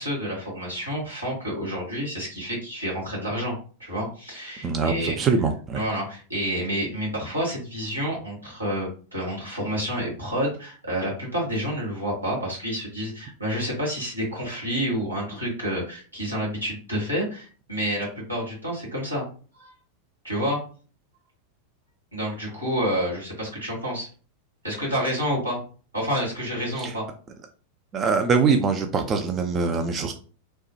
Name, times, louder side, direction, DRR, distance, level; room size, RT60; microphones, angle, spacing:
voice 1, 0.0-3.5 3.8-5.2 5.7-19.3 19.5-19.7 20.2-20.6 22.1-24.1 24.6-25.6 25.9-27.0, equal, 80° right, -5 dB, 1.6 m, -29 dB
voice 2, 4.6-5.8 26.8-26.9 27.9-30.1, right 5 dB, 25° right, 5 dB, 0.3 m, -23 dB
3.1 x 2.0 x 2.9 m, 0.40 s
figure-of-eight pair, 90°, 0 cm